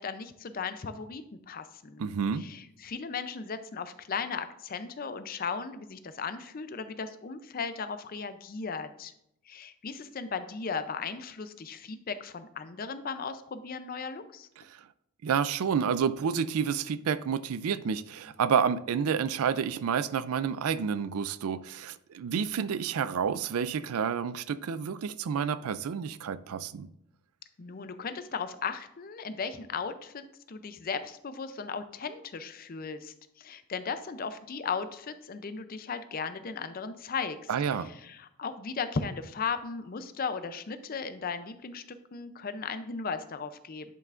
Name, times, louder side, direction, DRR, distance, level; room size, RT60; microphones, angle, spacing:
voice 1, 0.0-2.1 2.4-9.1 9.5-14.5 27.6-37.5 37.8-43.9, left 5 dB, 40° left, 0.5 m, -36 dB
voice 2, 2.0-2.5 14.7-14.8 15.2-26.9 37.5-37.9, right 7 dB, 75° right, 0.4 m, -29 dB
10.5 x 5.6 x 2.5 m
head